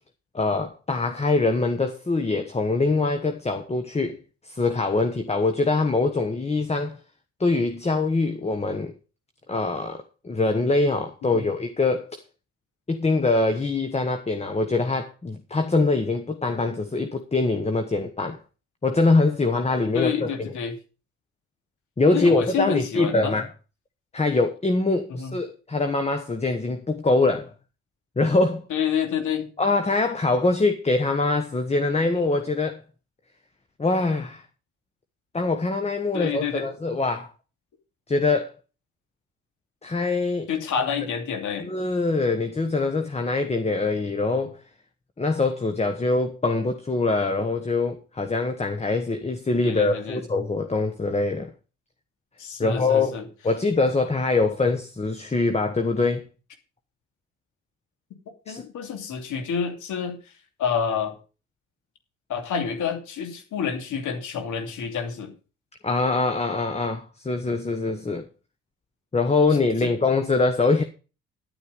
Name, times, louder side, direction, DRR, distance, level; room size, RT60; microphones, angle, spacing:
voice 1, 0.3-4.2 4.4-7.0 7.4-8.9 9.5-12.2 12.9-18.4 18.8-20.3 22.0-23.5 24.1-27.5 28.2-28.6 29.6-32.8 33.8-34.4 35.3-37.3 38.1-38.5 39.8-40.5 41.6-44.6 45.2-51.5 52.6-53.1 53.4-56.3 58.5-58.7 65.8-68.2 69.1-70.8, left 3 dB, 20° left, 1.2 m, -23 dB
voice 2, 19.9-20.8 22.1-23.4 25.1-25.4 28.7-29.5 36.1-36.7 40.5-41.7 49.6-50.2 52.4-53.3 58.5-60.2 60.6-61.1 62.3-65.3 69.8-69.9, left 7 dB, 80° left, 2.8 m, -28 dB
11.0 x 9.7 x 5.1 m
cardioid pair, 90°, 30 cm